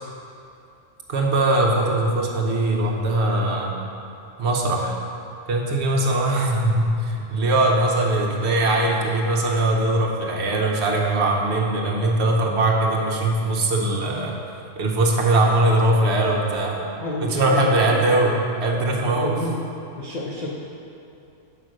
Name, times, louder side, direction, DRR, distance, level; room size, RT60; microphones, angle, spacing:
voice 1, 1.1-3.8 4.4-4.9 5.5-14.4 14.8-16.8 17.2-19.3, right 2 dB, 55° right, -1 dB, 1.1 m, -21 dB
voice 2, 17.0-18.2 19.0-19.6 20.0-20.5, left 1 dB, 40° left, -6 dB, 0.7 m, -30 dB
5.7 x 5.0 x 6.3 m, 2.7 s
omnidirectional pair, 1.4 m